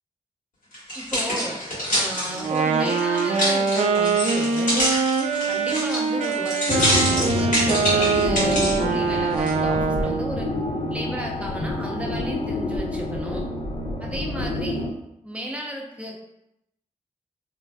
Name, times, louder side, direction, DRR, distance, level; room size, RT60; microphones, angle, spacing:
sound 1, 0.7-8.8 9.4-9.5, equal, 75° left, 1.3 m, -26 dB
voice 1, 0.9-1.6 1.9-4.8 5.5-10.5 10.9-13.5 14.0-14.8 15.2-16.2, right 1 dB, 10° right, -1 dB, 0.7 m, -33 dB
Wind instrument woodwind instrument, 2.4-10.3, right 5 dB, 55° right, 0.4 m, -23 dB
sound 2, 6.7-14.9, left 2 dB, 40° left, 0.4 m, -28 dB
3.2 x 2.5 x 2.2 m, 0.84 s
cardioid pair, 55°, 14 cm